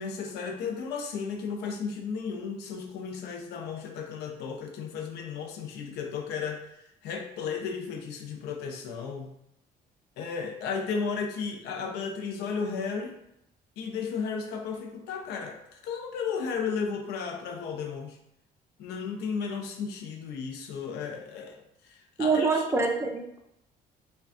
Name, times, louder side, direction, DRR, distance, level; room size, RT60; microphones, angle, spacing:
voice 1, 0.0-6.6 7.0-9.3 10.2-13.1 13.8-18.2 18.8-22.6, left 5 dB, 80° left, 2 dB, 0.5 m, -34 dB
voice 2, 22.2-23.4, right 4 dB, 15° right, 1 dB, 0.4 m, -25 dB
3.3 x 2.2 x 2.5 m, 0.80 s
cardioid pair, 110°, 17 cm